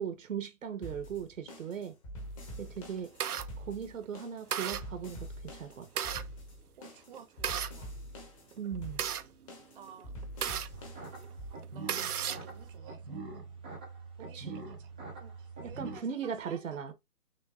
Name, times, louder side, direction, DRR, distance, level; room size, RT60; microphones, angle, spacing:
voice 1, 0.0-1.9 2.6-3.1 3.6-6.1 8.6-9.0 14.3-14.6 15.6-16.9, right 7 dB, 60° right, 1.0 m, -38 dB
sound 1, 0.8-11.5, equal, 20° left, 1.0 m, -45 dB
sound 2, 2.5-3.4 4.0-4.2 4.5-4.8 5.6-6.3 7.1-7.7 8.5-10.7 11.2-11.3 11.6-12.5, right 9 dB, 75° right, 0.7 m, -34 dB
voice 2, 6.8-8.0 9.7-10.1 11.7-13.4 14.2-14.9 15.2-16.9, right 7 dB, 35° right, 0.9 m, -53 dB
sound 3, 10.7-16.0, right 4 dB, 5° right, 0.5 m, -44 dB
6.3 x 2.5 x 2.4 m
hypercardioid pair, 150°, 45 cm